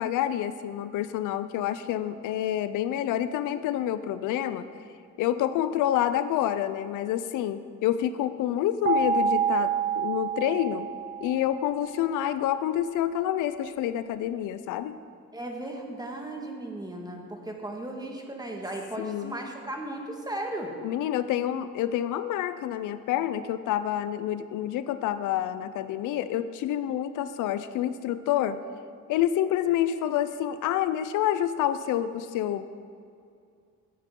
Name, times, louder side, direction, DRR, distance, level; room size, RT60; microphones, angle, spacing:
voice 1, 0.0-4.7 5.2-10.9 11.2-14.9 19.0-19.4 20.8-28.6 29.1-32.7, left 11 dB, 85° left, 13 dB, 0.5 m, -28 dB
sound 1, 8.9-11.8, right 6 dB, 40° right, 1.7 m, -27 dB
voice 2, 15.3-20.8, right 1 dB, 15° right, 2 dB, 1.7 m, -36 dB
13.0 x 9.8 x 3.8 m, 2.4 s
cardioid pair, 90°, 30 cm